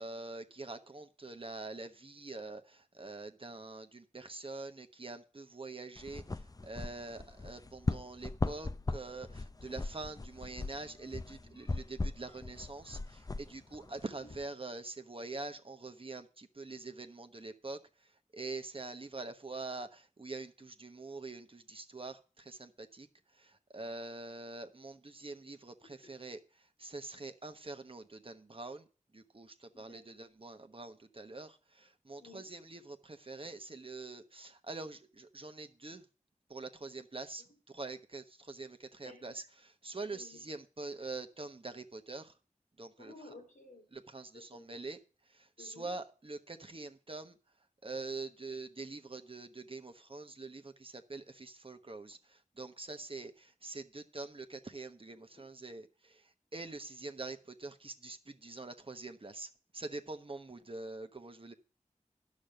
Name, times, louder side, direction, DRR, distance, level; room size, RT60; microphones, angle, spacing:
voice 1, 0.0-6.2 6.6-17.8 18.3-23.1 23.4-26.4 26.8-28.8 29.1-36.0 36.5-42.3 42.8-43.1 43.9-45.0 45.3-47.3 47.8-56.2 56.5-61.5, right 3 dB, 45° right, 1.1 m, -45 dB
sound 1, 6.0-14.4, left 3 dB, 30° left, 0.5 m, -39 dB
voice 2, 29.7-30.3 32.2-32.5 39.0-39.5 40.1-40.4 43.0-43.9 44.3-44.8 45.6-45.9, left 2 dB, 90° left, 2.6 m, -55 dB
10.5 x 6.4 x 6.5 m
cardioid pair, 45°, 13 cm